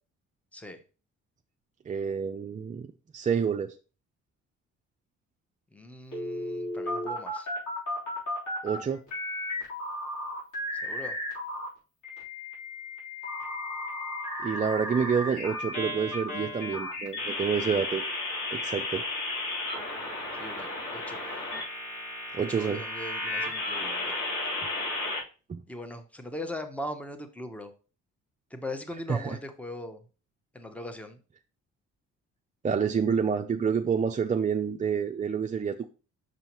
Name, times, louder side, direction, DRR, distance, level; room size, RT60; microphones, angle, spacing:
voice 1, 1.9-2.9 3.1-3.7 8.6-9.0 14.4-18.0 18.5-19.0 22.3-22.8 25.5-25.6 29.1-29.4 32.6-35.9, right 6 dB, 25° right, 0.4 m, -28 dB
voice 2, 5.7-7.5 10.8-11.2 20.4-21.2 22.3-24.2 25.7-27.7 28.5-30.0 30.5-31.2, left 1 dB, 5° left, 0.9 m, -40 dB
sound 1, 6.1-8.8 9.1-11.7 12.0-25.2, left 2 dB, 80° left, 3.7 m, -34 dB
6.3 x 5.5 x 3.0 m
cardioid pair, 90°, 30 cm